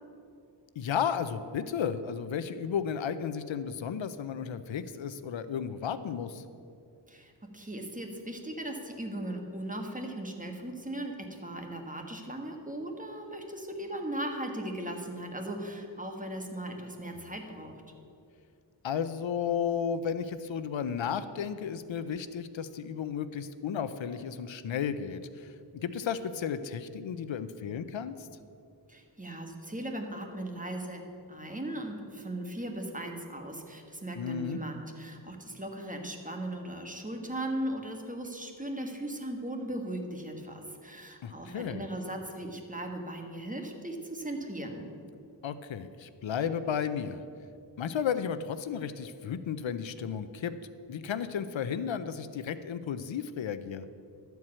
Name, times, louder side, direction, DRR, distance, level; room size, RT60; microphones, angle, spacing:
voice 1, 0.8-6.4 17.2-17.3 18.8-28.3 34.2-34.6 41.2-41.8 45.4-47.2 47.8-53.9, left 7 dB, 80° left, 12 dB, 0.6 m, -33 dB
voice 2, 7.1-17.7 28.9-31.0 31.3-44.8, right 1 dB, 15° right, 3 dB, 1.4 m, -38 dB
12.5 x 4.7 x 8.6 m, 2.5 s
wide cardioid pair, 65°, 45 cm